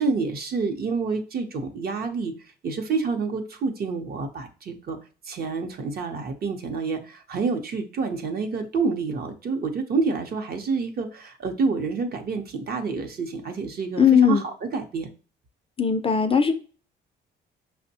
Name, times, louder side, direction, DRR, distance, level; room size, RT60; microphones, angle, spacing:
voice 1, 0.0-2.3 2.6-5.0 5.3-15.1, right 4 dB, 50° right, 5 dB, 0.7 m, -28 dB
voice 2, 14.0-14.4 15.8-16.5, left 6 dB, 30° left, 8 dB, 0.4 m, -18 dB
5.2 x 2.1 x 2.7 m, 0.37 s
cardioid pair, 90°, 20 cm